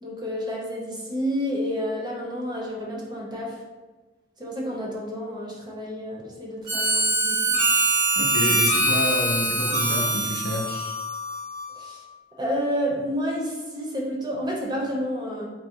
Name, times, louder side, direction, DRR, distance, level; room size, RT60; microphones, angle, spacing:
voice 1, 0.0-3.5 4.4-7.6 11.8-12.0 12.4-15.5, equal, 25° right, -4 dB, 0.8 m, -30 dB
Harmonica, 6.7-11.8, right 1 dB, 70° right, 1.2 m, -23 dB
voice 2, 8.2-11.0, left 1 dB, 55° left, 1 dB, 0.5 m, -28 dB
3.8 x 2.1 x 4.4 m, 1.3 s
head